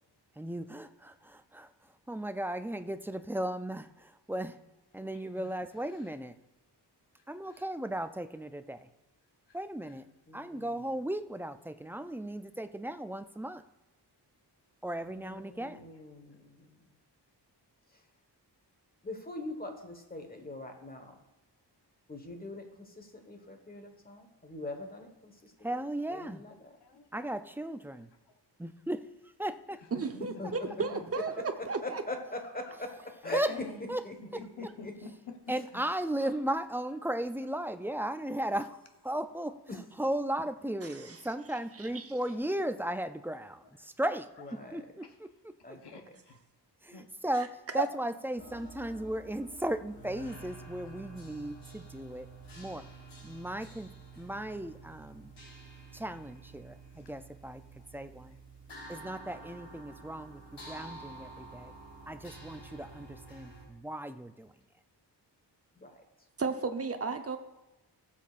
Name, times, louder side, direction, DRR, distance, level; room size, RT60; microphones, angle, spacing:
voice 1, 0.4-4.6 4.9-6.4 7.3-8.9 9.5-10.1 10.3-13.6 14.8-15.9 25.6-26.4 27.1-28.1 28.6-29.0 29.4-29.8 33.3-33.5 33.9-34.0 35.5-44.3 44.7-45.5 46.8-52.3 52.6-52.8 53.2-53.9 54.2-55.3 55.9-57.6 57.9-58.4 58.9-61.7 62.1-64.5, right 1 dB, 5° right, 9 dB, 0.3 m, -36 dB
voice 2, 5.1-5.6 5.9-6.1 7.4-7.7 9.5-9.9 15.5-15.7 26.8-27.4 28.2-28.3 29.8-31.4 32.7-32.8 33.2-34.1 34.4-35.8 36.2-36.5 36.9-37.0 39.4-39.8 41.8-42.3 43.6-43.8 44.4-44.6 45.0-45.2 45.8-46.4 46.9-47.1 57.4-57.9 58.3-58.4, left 4 dB, 70° left, 4 dB, 1.1 m, -50 dB
voice 3, 10.3-10.8 15.0-16.8 17.9-18.0 19.0-21.2 22.1-26.7 30.2-30.5 31.8-32.9 33.2-33.4 34.0-34.9 39.7-39.8 44.4-44.8 45.6-46.0 65.8-66.0, left 1 dB, 20° left, 5 dB, 1.3 m, -42 dB
voice 4, 29.9-32.0 40.9-41.2 41.9-42.1 47.7-47.8 66.4-67.4, right 4 dB, 35° right, 6 dB, 0.9 m, -33 dB
sound 1, 48.4-63.6, right 3 dB, 90° left, 3.7 m, -50 dB
18.0 x 7.4 x 2.5 m, 1.0 s
wide cardioid pair, 125°, 41 cm